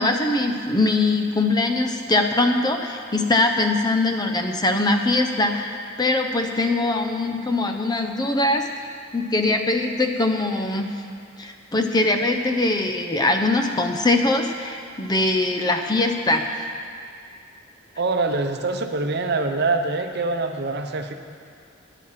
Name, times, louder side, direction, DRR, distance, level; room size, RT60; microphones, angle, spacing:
voice 1, 0.0-8.8 9.1-10.9 11.4-16.6, left 2 dB, 20° left, 5 dB, 0.7 m, -22 dB
voice 2, 18.0-21.1, right 3 dB, 55° right, 5 dB, 0.8 m, -24 dB
13.5 x 10.0 x 5.8 m, 2.3 s
head